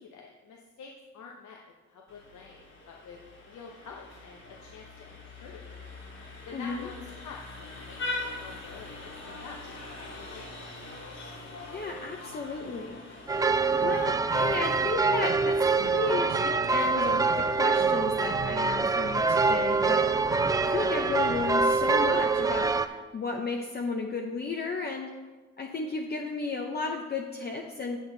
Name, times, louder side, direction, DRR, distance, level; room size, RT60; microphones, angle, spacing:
voice 1, 0.0-1.6 1.9-3.2 3.5-5.7 6.4-8.0 8.2-9.0 9.3-10.5, left 5 dB, 75° left, 0 dB, 1.0 m, -47 dB
Vehicle horn car horn honking, 2.1-18.9, left 2 dB, 55° left, 2.9 m, -43 dB
voice 2, 6.5-6.9 11.7-13.0 13.3-25.1 25.6-28.0, left 3 dB, 35° left, 1 dB, 0.8 m, -34 dB
sound 1, 13.3-22.9, right 4 dB, 15° right, 0.3 m, -25 dB
sound 2, 13.8-21.5, right 6 dB, 40° right, 0.7 m, -42 dB
7.9 x 7.9 x 4.0 m, 1.3 s
cardioid pair, 90°, 30 cm